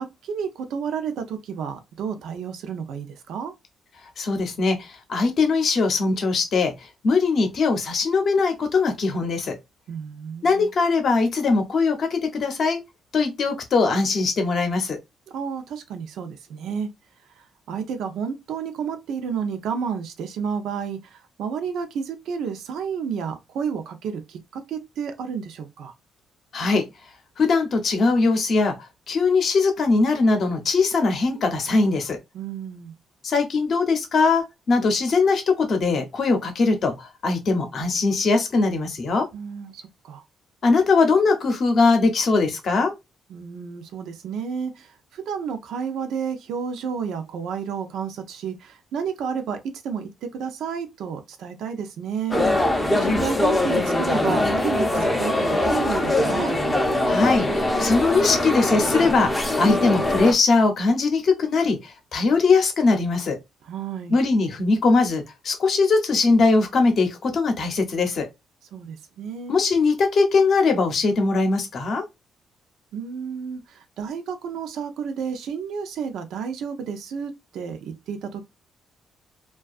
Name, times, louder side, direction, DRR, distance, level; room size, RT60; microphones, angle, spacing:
voice 1, 0.0-3.5 9.9-10.7 15.3-16.9 17.4-25.9 32.3-32.9 39.3-40.2 43.3-49.6 49.8-52.4 53.0-56.5 63.6-64.2 68.7-69.6 72.9-78.4, right 6 dB, 80° right, 0.5 m, -31 dB
voice 2, 4.2-6.7 7.0-9.6 10.4-12.8 13.1-15.0 26.5-26.8 27.4-28.7 29.1-32.2 33.2-39.3 40.6-42.9 57.1-63.4 64.1-68.3 69.5-72.0, left 4 dB, 45° left, 0.7 m, -21 dB
sound 1, 52.3-60.3, left 1 dB, 10° left, 0.5 m, -22 dB
2.6 x 2.3 x 2.3 m
cardioid pair, 165°, 0 cm